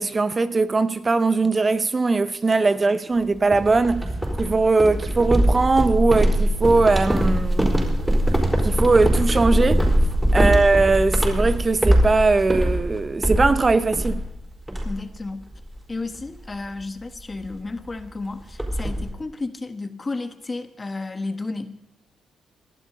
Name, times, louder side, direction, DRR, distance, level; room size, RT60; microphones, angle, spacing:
voice 1, 0.0-4.1 4.4-7.8 8.6-9.9 10.3-14.2, right 3 dB, 35° right, 0.6 m, -20 dB
sound 1, 3.5-14.4 14.7-15.2 15.5-15.7 16.1-16.4 17.4-17.5 17.8-17.9 18.2-19.1, equal, 10° right, 4.4 m, -22 dB
voice 2, 14.8-15.5 15.9-21.8, left 3 dB, 30° left, 1.4 m, -32 dB
19.0 x 12.0 x 4.0 m
supercardioid pair, 60°, 0 cm